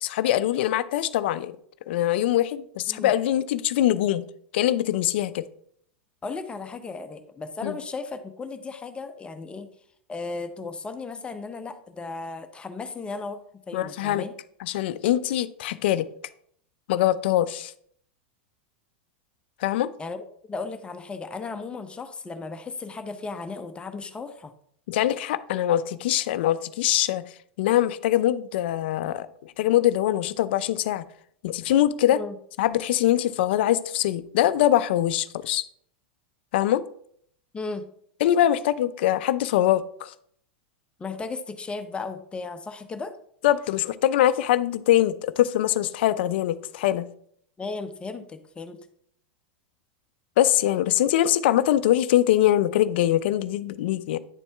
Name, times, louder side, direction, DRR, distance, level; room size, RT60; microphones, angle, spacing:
voice 1, 0.0-1.5 1.9-4.2 4.5-5.4 7.6-7.8 13.7-14.2 14.6-16.1 16.9-17.7 19.6-19.9 24.9-27.2 27.6-31.0 31.4-32.2 32.6-35.6 36.5-36.8 38.2-40.1 43.4-47.1 50.4-54.2, left 13 dB, 70° left, 0.4 m, -23 dB
voice 2, 6.2-9.7 10.1-13.4 13.7-14.3 20.0-20.2 20.5-24.5 32.1-32.4 37.5-37.8 41.0-43.1 47.6-48.8, left 4 dB, 15° left, 0.7 m, -35 dB
9.9 x 4.2 x 3.4 m
hypercardioid pair, 105°, 6 cm